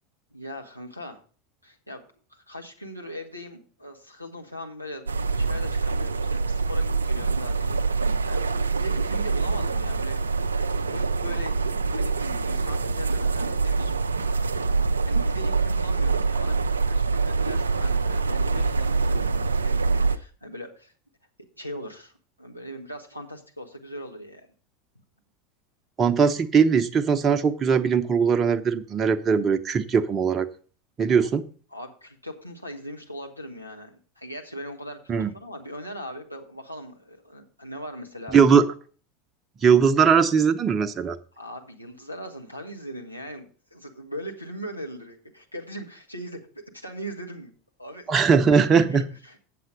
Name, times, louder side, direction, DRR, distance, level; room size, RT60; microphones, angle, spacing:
voice 1, 0.3-1.2 1.6-2.0 2.3-10.2 10.6-14.4 14.7-20.9 21.6-22.1 22.4-24.5 31.2-31.3 31.7-38.4 41.4-47.5 47.8-48.1 48.5-48.6 48.9-49.4, equal, 90° left, 1 dB, 1.4 m, -40 dB
sound 1, 5.1-20.2, right 4 dB, 80° right, 0.4 m, -25 dB
voice 2, 26.0-30.5 31.0-31.4 35.1-35.3 38.3-38.6 39.6-41.2 48.1-49.0, right 6 dB, 25° right, 9 dB, 0.8 m, -20 dB
7.9 x 7.7 x 5.1 m, 0.41 s
figure-of-eight pair, 80°, 0 cm